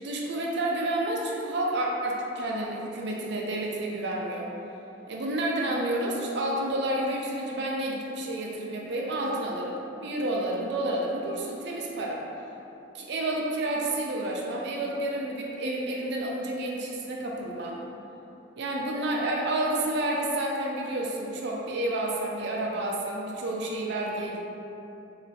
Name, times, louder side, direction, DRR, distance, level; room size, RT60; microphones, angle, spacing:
voice 1, 0.0-4.5 5.1-12.2 12.9-17.8 18.6-24.4, right 1 dB, 60° right, -2 dB, 0.4 m, -30 dB
3.2 x 2.8 x 2.6 m, 2.9 s
head